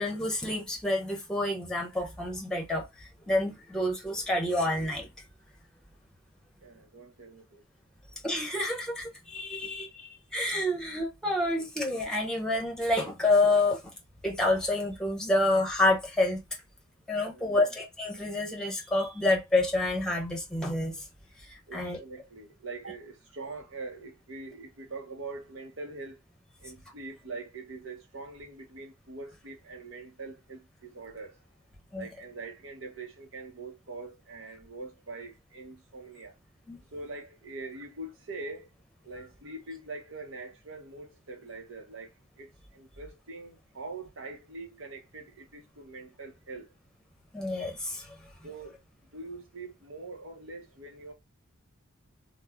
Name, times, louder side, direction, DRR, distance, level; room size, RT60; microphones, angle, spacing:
voice 1, 0.0-5.1 8.2-13.9 14.2-16.4 17.1-21.0 21.5-22.0 31.9-32.1 36.7-36.8 47.3-48.2, left 2 dB, 5° left, 0.9 m, -28 dB
voice 2, 6.6-7.6 9.6-9.7 17.3-17.7 21.7-26.2 26.6-31.4 31.9-36.4 36.9-38.7 39.0-46.7 48.4-48.8 49.1-51.1, right 3 dB, 70° right, 0.8 m, -43 dB
3.0 x 2.1 x 3.6 m
head